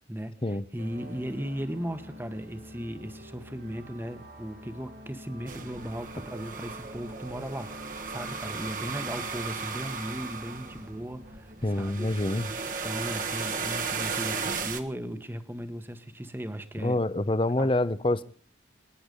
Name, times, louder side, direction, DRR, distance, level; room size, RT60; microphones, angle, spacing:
voice 1, 0.1-12.1 12.8-17.0 17.6-17.7, equal, 10° right, 10 dB, 1.2 m, -37 dB
sound 1, 0.8-13.8, equal, 90° right, 5.7 m, -48 dB
sound 2, 5.5-14.8, right 5 dB, 45° right, 1.5 m, -35 dB
voice 2, 11.6-12.5 16.8-18.2, left 2 dB, 30° left, 16 dB, 0.7 m, -26 dB
26.5 x 10.0 x 5.3 m, 0.41 s
head